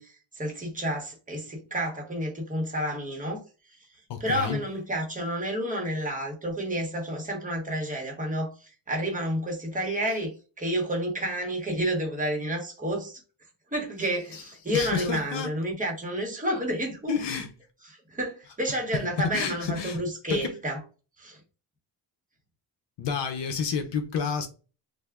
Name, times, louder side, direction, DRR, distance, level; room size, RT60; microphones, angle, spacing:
voice 1, 0.0-3.4 4.2-8.6 8.9-13.2 13.7-17.4 17.8-20.8 21.2-21.4, right 1 dB, 15° right, 0.9 m, -30 dB
voice 2, 4.1-4.6 14.3-14.4 14.7-15.5 17.1-17.5 19.2-20.0 20.3-20.6 23.0-24.5, left 6 dB, 65° left, 0.7 m, -30 dB
3.4 x 2.1 x 3.4 m
wide cardioid pair, 160°, 46 cm